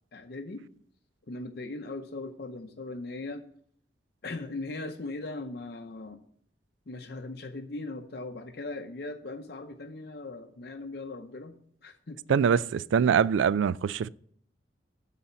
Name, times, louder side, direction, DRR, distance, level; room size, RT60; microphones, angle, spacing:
voice 1, 0.1-0.6 1.3-3.4 4.2-6.2 6.9-12.7, left 2 dB, 55° left, 0.7 m, -39 dB
voice 2, 12.3-14.1, right 7 dB, 85° right, 0.3 m, -24 dB
11.5 x 4.2 x 6.9 m
head